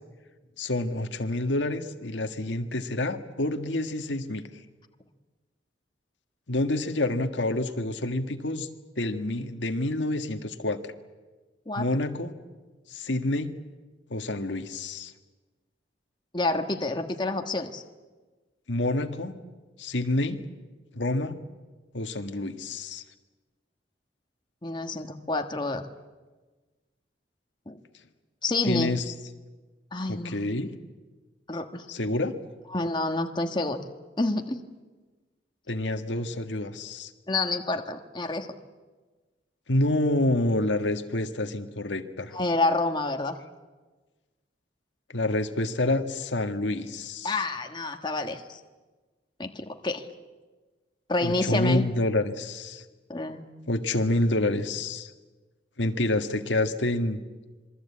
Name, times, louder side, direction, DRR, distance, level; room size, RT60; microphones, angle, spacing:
voice 1, 0.6-4.4 6.5-8.7 9.0-10.9 11.8-12.3 12.9-13.5 14.1-15.1 18.7-19.3 19.8-20.4 20.9-21.4 21.9-23.0 28.6-29.1 30.1-30.7 31.9-32.3 35.7-37.1 39.7-42.4 45.1-47.3 51.2-52.8 53.7-55.1 55.8-57.2, left 2 dB, 90° left, 6 dB, 1.7 m, -28 dB
voice 2, 16.3-17.8 24.6-25.9 27.7-27.8 28.4-28.9 29.9-30.4 31.5-31.8 32.7-33.8 34.2-34.6 37.3-38.5 42.3-43.3 47.2-48.6 49.4-50.1 51.1-51.9 53.1-53.5, left 2 dB, 25° left, 5 dB, 1.4 m, -28 dB
26.5 x 22.0 x 8.5 m, 1.3 s
head